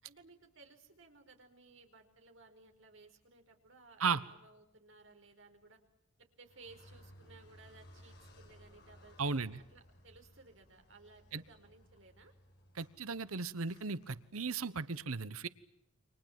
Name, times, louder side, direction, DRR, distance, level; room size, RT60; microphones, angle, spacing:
voice 1, 0.0-5.8 6.2-12.3, right 3 dB, 60° right, 4 dB, 4.9 m, -59 dB
Car, 6.5-14.7, equal, 50° left, 5.1 m, -60 dB
voice 2, 9.2-9.6 11.3-11.4 12.7-15.5, right 4 dB, 80° right, 16 dB, 1.1 m, -36 dB
29.5 x 25.5 x 7.5 m, 0.90 s
head